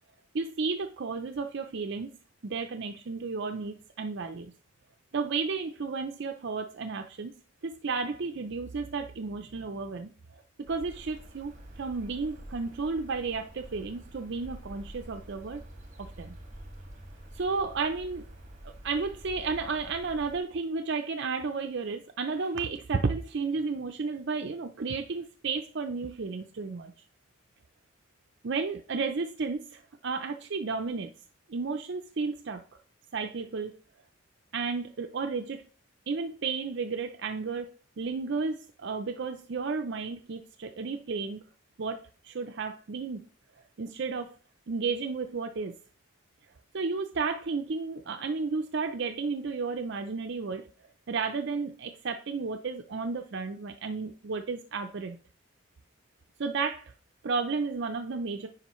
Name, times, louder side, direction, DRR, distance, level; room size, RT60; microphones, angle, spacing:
voice 1, 0.3-2.1 2.4-4.5 5.1-7.3 7.6-15.6 16.0-16.4 17.3-18.3 18.6-26.9 28.4-31.1 31.5-32.6 33.1-33.7 34.5-35.6 36.1-37.7 38.0-41.4 41.8-43.3 43.8-44.3 44.7-45.7 46.7-50.6 51.1-55.2 56.4-56.9 57.2-58.5, right 4 dB, 55° right, 0.5 m, -33 dB
sound 1, 10.7-20.4, right 1 dB, 40° right, 1.7 m, -47 dB
9.7 x 5.2 x 3.0 m
head